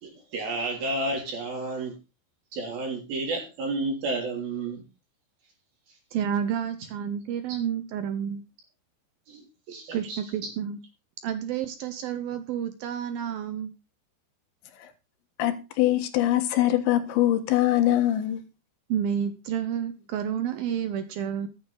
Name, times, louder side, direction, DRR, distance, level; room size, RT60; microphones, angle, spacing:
voice 1, 0.0-2.0 2.5-4.8 7.5-7.6 9.3-10.2, right 2 dB, 50° right, 4.7 m, -31 dB
voice 2, 6.1-8.4 9.9-10.8 11.2-13.7 18.9-21.5, right 8 dB, 80° right, 2.1 m, -30 dB
voice 3, 15.4-18.4, left 13 dB, 70° left, 3.4 m, -23 dB
13.5 x 10.0 x 4.0 m
omnidirectional pair, 5.6 m